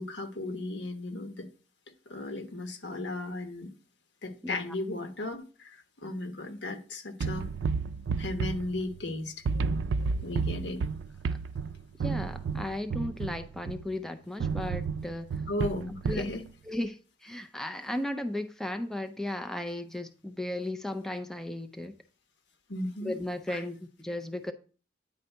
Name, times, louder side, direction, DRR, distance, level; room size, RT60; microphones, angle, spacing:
voice 1, 0.0-1.5 2.1-3.7 4.2-7.5 8.2-9.7 10.0-10.8 15.5-16.4 22.7-23.1 23.5-23.6, left 2 dB, 80° left, 1.1 m, -36 dB
sound 1, 7.2-9.1 9.5-13.9 14.4-16.3, right 5 dB, 85° right, 0.3 m, -32 dB
voice 2, 12.0-15.4 16.0-16.2 16.7-21.9 23.0-24.5, left 1 dB, 5° left, 0.4 m, -35 dB
9.5 x 4.0 x 4.5 m
head